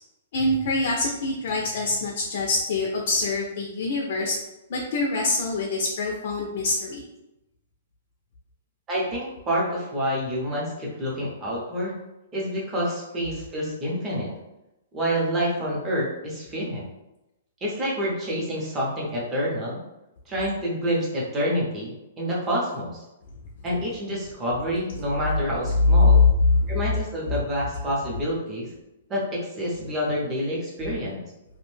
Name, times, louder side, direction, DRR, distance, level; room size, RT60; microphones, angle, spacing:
voice 1, 0.3-4.4 4.7-7.0 26.7-26.8, left 2 dB, 50° left, -1 dB, 0.4 m, -26 dB
voice 2, 8.9-12.0 12.3-14.3 14.9-16.8 17.6-19.8 20.3-23.0 23.6-26.2 26.7-28.7 29.1-31.2, equal, 15° right, -5 dB, 0.6 m, -28 dB
2.5 x 2.1 x 3.1 m, 0.94 s
hypercardioid pair, 170°, 0 cm